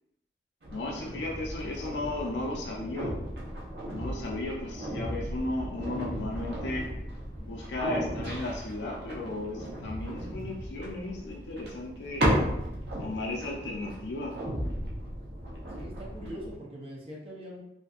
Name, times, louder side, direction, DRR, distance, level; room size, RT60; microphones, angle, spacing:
sound 1, 0.6-16.5, equal, 70° right, 0.6 m, -35 dB
voice 1, 0.7-3.1 3.9-6.9 7.4-12.3 13.0-14.3, left 2 dB, 85° left, -1 dB, 0.4 m, -35 dB
voice 2, 15.8-17.6, equal, 30° right, -3 dB, 0.6 m, -42 dB
2.6 x 2.5 x 2.3 m, 0.85 s
head